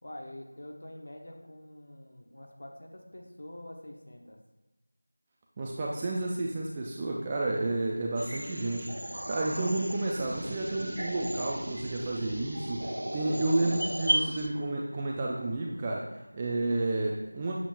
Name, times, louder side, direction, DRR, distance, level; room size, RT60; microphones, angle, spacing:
voice 1, 0.0-4.4, left 1 dB, 40° left, 1 dB, 1.0 m, -46 dB
voice 2, 5.6-17.5, right 2 dB, 10° right, -2 dB, 0.3 m, -31 dB
sound 1, 8.2-14.5, right 1 dB, 70° right, 0.8 m, -35 dB
7.2 x 6.8 x 2.5 m, 1.1 s
figure-of-eight pair, 175°, 0 cm